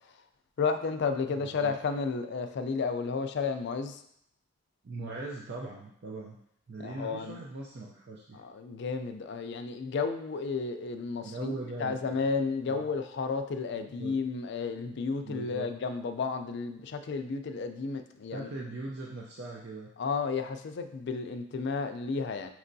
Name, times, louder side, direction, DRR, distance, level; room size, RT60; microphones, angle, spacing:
voice 1, 0.6-4.0 6.8-7.4 8.3-18.5 20.0-22.5, left 4 dB, 60° left, 7 dB, 0.4 m, -32 dB
voice 2, 1.3-1.7 4.8-6.4 6.7-8.4 11.2-12.2 12.7-12.8 13.8-14.1 15.2-15.7 18.3-19.9, right 2 dB, 55° right, -2 dB, 0.5 m, -40 dB
5.3 x 3.0 x 2.6 m, 0.73 s
head